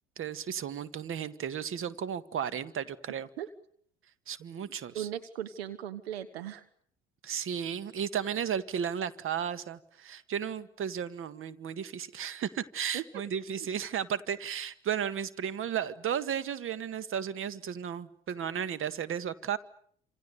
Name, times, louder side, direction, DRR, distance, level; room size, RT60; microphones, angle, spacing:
voice 1, 0.2-3.3 4.3-5.1 7.2-19.6, right 8 dB, 40° right, 1.8 m, -34 dB
voice 2, 4.9-6.6 12.9-13.0 13.6-13.7, right 11 dB, 75° right, 1.4 m, -37 dB
28.5 x 27.5 x 6.9 m
figure-of-eight pair, 60°, 31 cm